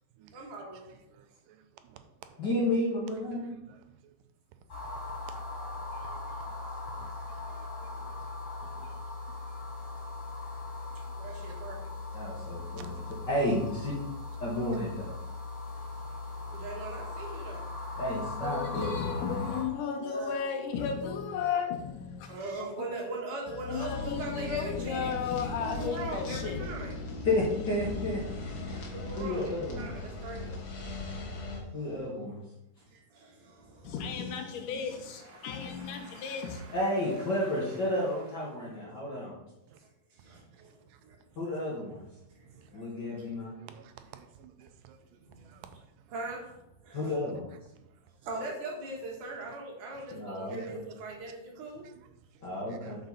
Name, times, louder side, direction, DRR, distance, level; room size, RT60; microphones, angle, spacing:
voice 1, 0.3-0.9 10.9-11.8 15.7-17.8 20.0-20.4 22.3-25.1 25.4-27.3 28.7-29.4 29.8-31.9 32.8-34.2 34.6-37.9 39.8-40.7 41.0-41.2 42.3-42.9 45.2-45.5 46.1-47.1 48.2-51.9, right 2 dB, 70° right, 2.9 m, -42 dB
voice 2, 0.9-2.4 3.3-4.2 4.8-4.9 5.3-5.4 5.9-6.5 7.0-8.3 8.8-9.0 10.8-11.6 12.6-13.3 39.7-39.8 40.9-41.0 42.5-42.8 43.3-46.1 46.9-47.1 47.8-47.9 49.9-50.0 50.6-50.7 51.8-52.4 52.7-53.0, right 9 dB, 90° right, 2.3 m, -55 dB
voice 3, 2.4-3.5 12.1-12.9 13.3-13.9 14.4-15.1 18.0-19.4 27.2-28.2 28.6-28.9 29.2-29.9 31.7-32.4 36.7-39.4 41.4-42.0 42.7-43.5 46.9-47.5 50.1-50.6 52.4-53.0, left 1 dB, 45° left, 1.4 m, -31 dB
sound 1, 4.7-19.6, left 3 dB, 30° left, 3.3 m, -39 dB
voice 4, 18.4-22.4 22.7-22.9 23.5-26.7 33.8-36.6, left 6 dB, 80° left, 2.2 m, -34 dB
sound 2, 23.9-31.6, left 2 dB, 60° left, 0.9 m, -38 dB
8.0 x 5.9 x 4.1 m
omnidirectional pair, 3.9 m